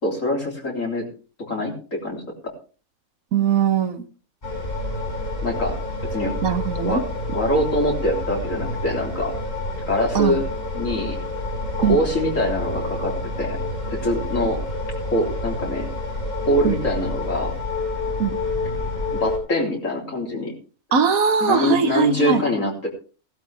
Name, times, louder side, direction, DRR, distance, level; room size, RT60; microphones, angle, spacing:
voice 1, 0.0-1.1 1.5-2.5 5.4-5.8 6.1-6.3 6.8-7.0 7.3-9.3 9.9-10.4 10.7-11.2 11.8-13.6 13.9-14.6 15.1-15.9 16.5-17.5 19.2-20.5 21.4-22.9, left 1 dB, 60° left, 0 dB, 3.9 m, -24 dB
voice 2, 3.3-4.0 6.4-7.0 10.1-10.4 11.8-12.0 16.6-16.7 18.2-18.4 20.9-22.4, right 7 dB, 75° right, 10 dB, 1.5 m, -20 dB
sound 1, 4.4-19.4, left 2 dB, 40° left, 6.9 m, -28 dB
16.5 x 12.0 x 3.4 m, 0.37 s
omnidirectional pair, 1.5 m